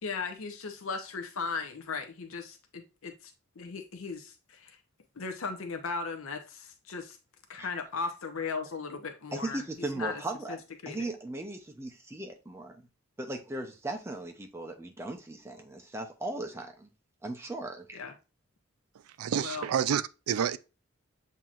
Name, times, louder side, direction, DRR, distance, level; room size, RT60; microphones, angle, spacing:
voice 1, 0.0-4.8 5.2-7.2 7.5-10.2 10.5-10.6 10.8-11.1 17.9-18.1 19.4-19.7, left 4 dB, 75° left, 0.6 m, -37 dB
voice 2, 9.3-10.6 10.9-12.9 13.2-16.9 17.2-18.0, right 2 dB, 10° right, 0.5 m, -37 dB
voice 3, 19.0-20.6, right 8 dB, 85° right, 0.4 m, -29 dB
7.3 x 2.8 x 2.4 m
head